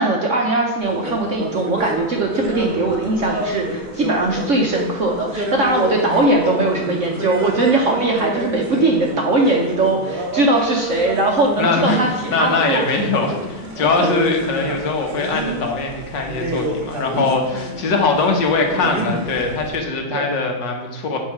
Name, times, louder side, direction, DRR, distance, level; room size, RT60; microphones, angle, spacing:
voice 1, 0.0-12.8 13.7-14.1 17.5-17.7 20.1-20.3, right 2 dB, 60° right, 0 dB, 0.8 m, -20 dB
sound 1, 0.8-19.8, right 1 dB, 30° right, 1.1 m, -28 dB
voice 2, 11.6-12.0 12.3-21.2, left 3 dB, 65° left, 3 dB, 1.8 m, -21 dB
7.3 x 4.7 x 5.8 m, 1.2 s
omnidirectional pair, 2.2 m